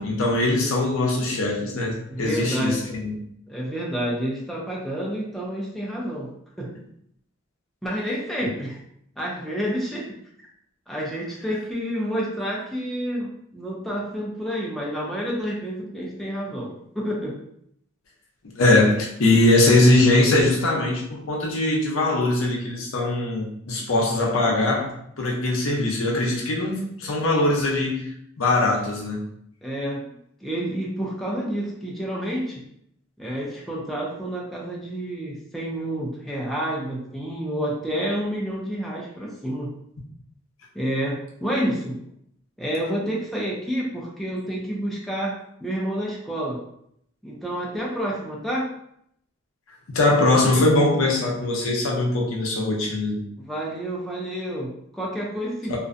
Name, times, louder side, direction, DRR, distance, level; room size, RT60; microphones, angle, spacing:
voice 1, 0.0-3.2 18.5-28.0 28.4-29.3 49.9-53.2 55.7-55.8, left 2 dB, 70° left, -2 dB, 0.6 m, -21 dB
voice 2, 2.1-2.9 3.5-6.3 6.6-6.7 7.8-8.8 9.2-10.1 10.9-17.4 29.6-30.1 30.4-32.6 33.2-39.7 40.7-42.0 42.6-46.6 47.2-48.7 53.4-55.8, equal, ahead, -4 dB, 0.4 m, -29 dB
2.5 x 2.1 x 2.5 m, 0.71 s
head